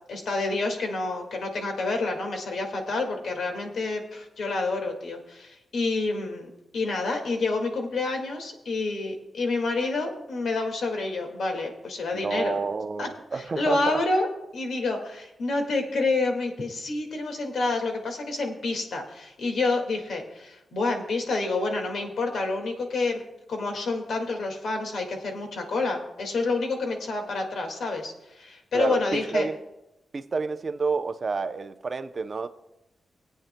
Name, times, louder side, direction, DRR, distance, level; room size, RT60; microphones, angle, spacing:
voice 1, 0.1-12.6 13.0-23.2 23.5-29.5, left 3 dB, 75° left, 3 dB, 1.9 m, -28 dB
voice 2, 12.2-14.0 28.7-29.6 30.1-32.5, right 4 dB, 40° right, 8 dB, 0.6 m, -29 dB
21.0 x 8.8 x 2.2 m, 0.93 s
wide cardioid pair, 125°, 0 cm